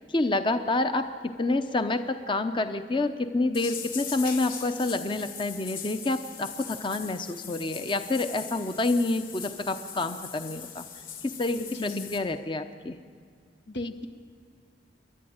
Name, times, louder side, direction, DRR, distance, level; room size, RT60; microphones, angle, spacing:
voice 1, 0.1-10.8 11.2-13.0, left 2 dB, 30° left, 9 dB, 0.7 m, -28 dB
sound 1, 3.5-12.2, left 7 dB, 55° left, 2.2 m, -40 dB
voice 2, 11.7-12.1 13.7-14.1, left 2 dB, 80° left, 8 dB, 1.2 m, -34 dB
29.0 x 11.5 x 8.7 m, 2.1 s
head